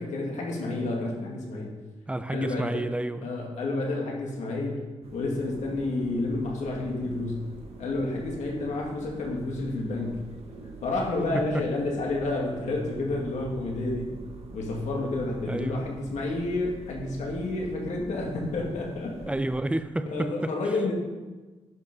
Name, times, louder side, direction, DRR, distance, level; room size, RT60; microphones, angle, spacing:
voice 1, 0.0-1.7 2.3-2.8 3.2-4.8 5.1-7.4 7.8-10.3 10.8-14.2 14.5-19.3 20.1-20.9, left 2 dB, 80° left, 2.1 m, -30 dB
voice 2, 2.1-3.3 11.3-11.6 15.5-15.9 19.3-20.5, right 1 dB, 10° right, 0.4 m, -30 dB
sound 1, 5.0-19.6, right 3 dB, 60° right, 1.4 m, -44 dB
10.5 x 5.8 x 5.4 m
wide cardioid pair, 140°, 12 cm